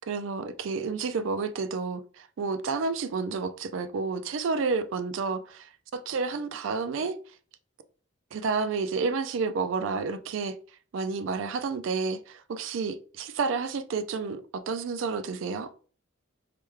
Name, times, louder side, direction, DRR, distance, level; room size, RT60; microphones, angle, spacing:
voice 1, 0.1-7.2 8.3-10.6 10.9-15.7, right 4 dB, 70° right, 0.4 m, -30 dB
3.3 x 2.2 x 3.1 m
head